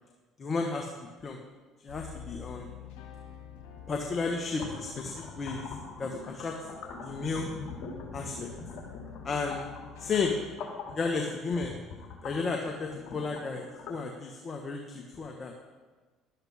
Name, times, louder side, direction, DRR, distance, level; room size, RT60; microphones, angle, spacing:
voice 1, 0.4-0.9 1.2-1.4 1.8-2.7 3.9-5.6 6.0-6.5 7.0-7.5 8.1-8.5 9.2-9.6 10.0-10.3 10.9-11.7 12.2-15.5, left 4 dB, 40° left, 2 dB, 1.4 m, -33 dB
sound 1, 1.9-10.6, left 8 dB, 80° left, 1.8 m, -48 dB
sound 2, 4.5-14.0, left 4 dB, 60° left, 2.3 m, -43 dB
13.0 x 12.0 x 3.6 m, 1.3 s
supercardioid pair, 75°, 0 cm